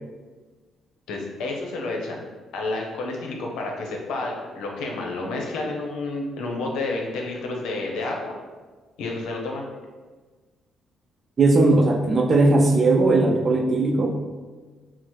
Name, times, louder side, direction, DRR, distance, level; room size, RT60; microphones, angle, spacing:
voice 1, 1.1-2.2 2.5-8.4 9.0-9.7, left 2 dB, 90° left, 0 dB, 0.7 m, -30 dB
voice 2, 11.4-14.2, right 2 dB, 40° right, 4 dB, 0.5 m, -18 dB
4.6 x 2.1 x 4.3 m, 1.4 s
cardioid pair, 90°, 0 cm